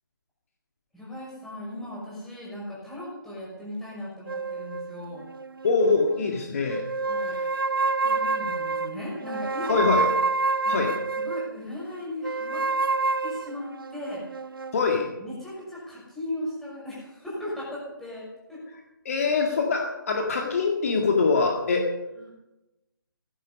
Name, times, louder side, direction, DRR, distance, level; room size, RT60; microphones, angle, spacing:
voice 1, 0.9-5.2 7.1-7.4 8.0-9.9 10.6-12.6 13.2-14.2 15.2-18.6 20.4-20.6 22.2-22.3, left 1 dB, 5° left, -7 dB, 5.6 m, -37 dB
sound 1, 4.3-6.3 6.7-11.5 12.2-14.8, right 3 dB, 75° right, 0.7 m, -28 dB
voice 2, 5.6-6.8 7.2-7.5 9.7-10.1 10.7-10.9 14.7-15.1 19.1-21.9, left 4 dB, 40° left, 1 dB, 2.2 m, -24 dB
17.0 x 14.5 x 5.4 m, 0.99 s
figure-of-eight pair, 150°, 12 cm